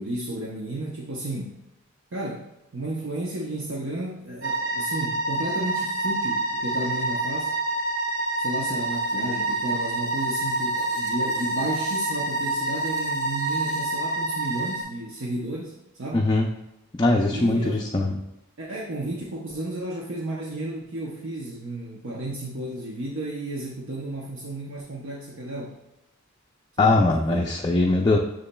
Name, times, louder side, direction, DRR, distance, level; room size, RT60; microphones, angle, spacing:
voice 1, 0.0-1.6 2.1-7.5 8.4-16.3 17.3-17.8 18.6-25.8 26.8-27.6, right 1 dB, 60° right, -3 dB, 0.7 m, -33 dB
sound 1, 4.4-14.8, right 2 dB, 85° right, 1.2 m, -27 dB
voice 2, 16.1-16.5 17.0-18.1 26.8-28.2, left 2 dB, 20° left, -1 dB, 0.4 m, -21 dB
6.9 x 6.4 x 2.2 m, 0.93 s
head